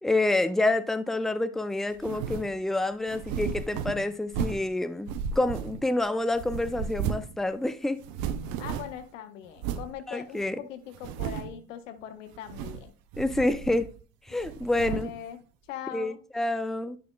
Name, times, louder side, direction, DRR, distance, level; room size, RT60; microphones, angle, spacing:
voice 1, 0.0-8.0 10.1-10.6 13.2-13.9 14.3-15.1 15.9-17.0, left 2 dB, ahead, 0.5 m, -28 dB
sound 1, 2.0-2.5 3.1-4.7 5.1-6.0 6.4-7.4 7.6-7.7 8.0-9.0 9.6-9.9 10.4-10.5 10.9-11.6 12.4-12.9 13.1-14.0 14.4-15.2, right 7 dB, 70° right, 0.6 m, -34 dB
voice 2, 8.6-12.9 14.8-16.2, left 10 dB, 90° left, 0.7 m, -41 dB
8.5 x 6.0 x 2.3 m
hypercardioid pair, 45°, 37 cm